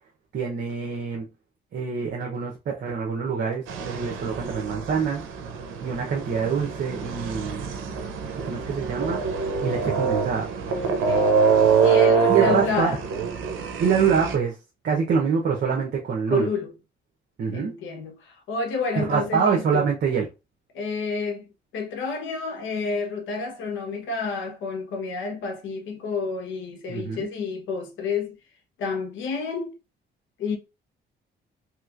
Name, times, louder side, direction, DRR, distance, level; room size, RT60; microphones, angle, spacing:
voice 1, 0.3-1.3 1.7-5.2 5.8-7.7 8.4-9.2 9.6-10.5 12.3-13.0 13.8-14.5 14.8-16.5 17.4-17.7 18.9-20.3 26.9-27.3, right 6 dB, 55° right, 0.9 m, -25 dB
sound 1, 3.7-14.3, right 5 dB, 85° right, 0.6 m, -25 dB
voice 2, 10.7-11.4 11.8-13.0 16.3-16.7 17.5-19.9 20.7-28.4 28.8-29.8 30.4-30.6, left 4 dB, 75° left, 1.1 m, -30 dB
3.2 x 3.0 x 2.5 m
cardioid pair, 90°, 20 cm